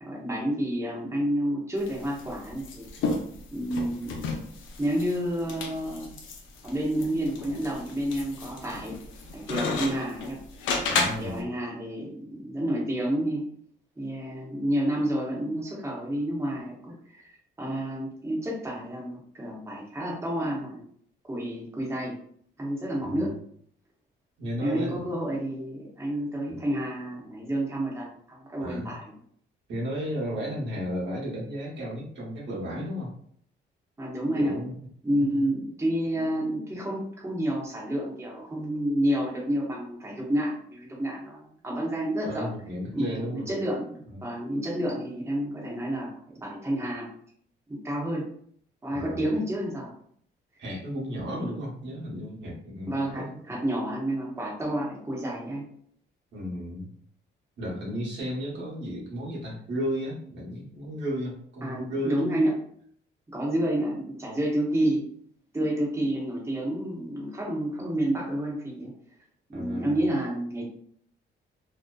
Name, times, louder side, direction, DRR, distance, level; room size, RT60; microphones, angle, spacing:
voice 1, 0.0-2.8 3.5-4.2 4.8-6.2 6.6-9.0 9.3-10.4 11.2-13.4 14.0-20.8 21.3-22.2 22.6-23.3 24.6-29.1 34.0-34.5 35.0-42.5 42.9-47.1 47.7-48.3 48.8-49.9 51.4-51.5 52.9-55.7 61.6-62.5 63.3-65.0 65.5-68.9 69.5-70.6, right 1 dB, 15° right, -4 dB, 0.8 m, -29 dB
sound 1, 1.8-11.4, left 4 dB, 80° left, 0.5 m, -33 dB
voice 2, 10.9-11.5 23.0-23.3 24.4-25.1 28.6-29.0 29.7-33.1 34.4-34.8 35.2-35.4 42.3-43.5 44.1-44.3 48.9-49.3 50.6-53.3 56.3-56.9 57.6-62.4 69.5-70.0, equal, 65° right, -4 dB, 1.0 m, -34 dB
2.6 x 2.1 x 2.3 m, 0.62 s
cardioid pair, 90°, 20 cm